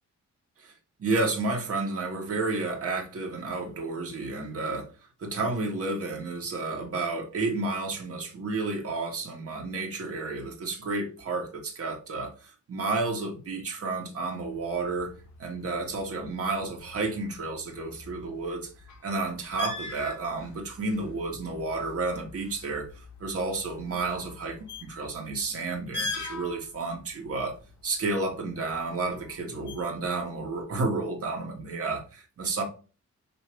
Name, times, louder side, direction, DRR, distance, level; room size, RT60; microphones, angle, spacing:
voice 1, 1.0-4.9 5.2-15.1 15.4-18.7 19.0-22.9 23.2-27.5 27.8-32.6, right 3 dB, 50° right, 1 dB, 1.7 m, -31 dB
sound 1, 14.4-30.6, left 2 dB, 80° left, 1.8 m, -43 dB
6.8 x 3.1 x 4.5 m, 0.36 s
wide cardioid pair, 140°, 30 cm